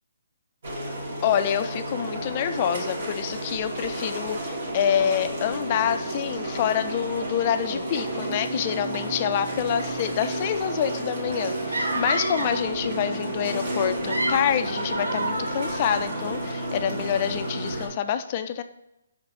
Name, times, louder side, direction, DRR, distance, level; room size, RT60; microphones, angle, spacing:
sound 1, 0.6-17.9, right 1 dB, 60° right, 2.6 m, -31 dB
voice 1, 1.2-18.6, left 9 dB, 35° left, 9 dB, 0.5 m, -27 dB
sound 2, 11.7-12.7 13.8-16.2, right 1 dB, 85° right, 1.4 m, -30 dB
5.7 x 4.7 x 6.2 m, 0.89 s
figure-of-eight pair, 145°, 0 cm